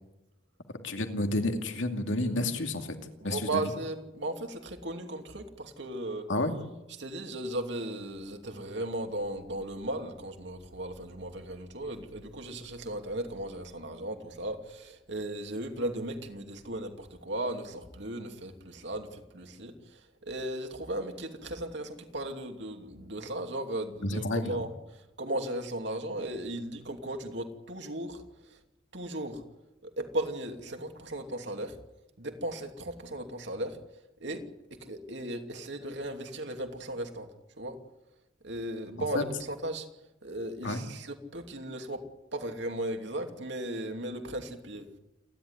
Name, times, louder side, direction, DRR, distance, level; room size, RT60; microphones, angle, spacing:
voice 1, 0.8-3.0 3.2-3.6 6.3-6.5 24.0-24.6 39.1-39.2 40.6-40.8, left 2 dB, 75° left, 5 dB, 2.5 m, -30 dB
voice 2, 3.2-6.3 7.0-28.6 28.9-29.4 29.8-31.8 32.2-33.8 34.2-37.8 38.4-39.9 40.2-42.1 42.3-44.9, right 1 dB, 65° right, 4 dB, 2.7 m, -36 dB
28.5 x 11.5 x 9.9 m, 0.96 s
head